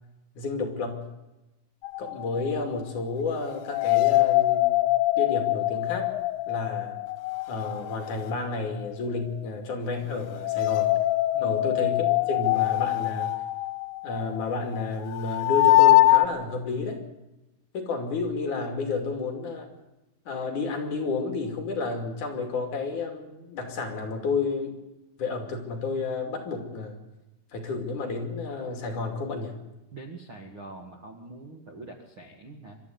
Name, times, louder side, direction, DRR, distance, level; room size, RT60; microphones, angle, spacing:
voice 1, 0.4-1.0 2.0-4.7 5.2-6.1 6.5-7.0 7.5-10.9 11.4-13.4 14.0-17.0 17.7-19.7 20.3-24.8 25.2-27.0 27.5-29.6, left 4 dB, 50° left, 4 dB, 3.6 m, -31 dB
sound 1, 1.8-2.6 3.6-8.3 10.3-16.3, left 17 dB, 85° left, 3.1 m, -23 dB
voice 2, 29.9-32.8, right 2 dB, 45° right, 3 dB, 1.7 m, -44 dB
24.0 x 13.5 x 9.4 m, 1.0 s
omnidirectional pair, 4.9 m